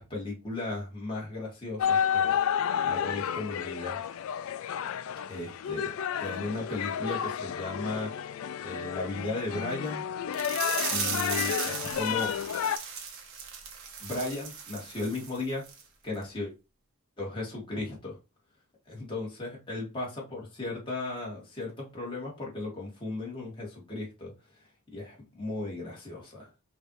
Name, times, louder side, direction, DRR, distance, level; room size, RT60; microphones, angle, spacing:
voice 1, 0.0-2.4 2.8-4.2 5.3-5.9 6.2-8.1 8.6-10.0 10.9-12.3 14.0-15.6 16.0-16.5 17.2-18.2 18.9-24.3 24.9-26.5, left 2 dB, 20° left, 1.8 m, -36 dB
sound 1, 1.8-12.8, left 8 dB, 70° left, 0.3 m, -31 dB
sound 2, 10.3-15.4 15.7-15.8 16.2-16.3, right 6 dB, 60° right, 0.9 m, -36 dB
5.3 x 2.6 x 3.0 m
head